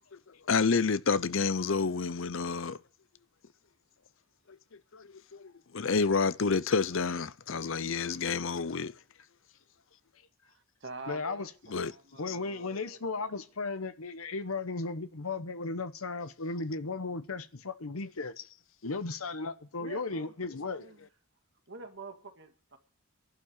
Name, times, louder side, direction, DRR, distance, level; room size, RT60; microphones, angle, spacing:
voice 1, 0.5-2.8 4.9-5.1 5.7-8.9 11.7-11.9 12.3-12.4, left 5 dB, 60° left, 0.6 m, -28 dB
voice 2, 10.4-13.3 19.8-21.1 21.7-22.8, right 3 dB, 55° right, 2.0 m, -47 dB
voice 3, 11.1-11.5 12.2-18.3 18.8-20.8, left 3 dB, 80° left, 1.0 m, -35 dB
12.5 x 11.5 x 8.7 m
head